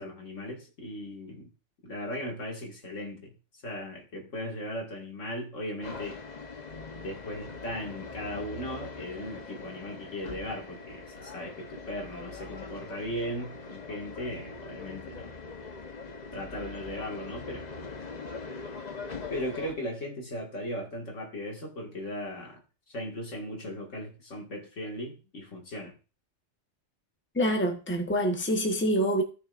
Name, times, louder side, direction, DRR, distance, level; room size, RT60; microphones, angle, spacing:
voice 1, 0.0-1.5 1.8-3.3 3.6-6.2 7.0-15.3 16.3-17.7 19.3-22.6 22.9-26.0, equal, 75° left, 2.4 m, -37 dB
sound 1, 5.8-19.7, left 4 dB, 35° left, 1.0 m, -42 dB
voice 2, 27.3-29.2, equal, 10° left, 1.2 m, -26 dB
16.0 x 6.3 x 2.5 m
omnidirectional pair, 1.3 m